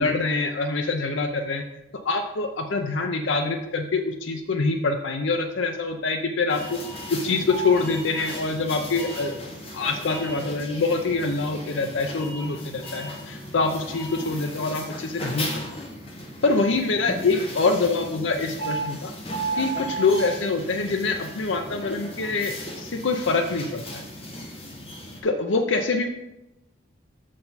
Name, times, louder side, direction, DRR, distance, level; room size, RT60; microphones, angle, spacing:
voice 1, 0.0-1.6 2.0-6.8 7.1-9.4 9.7-15.6 16.4-19.1 19.6-24.0 25.2-26.1, left 3 dB, 70° left, 4 dB, 0.5 m, -25 dB
sound 1, 6.5-25.2, right 1 dB, 30° left, 1.2 m, -35 dB
7.5 x 5.8 x 4.0 m, 0.93 s
head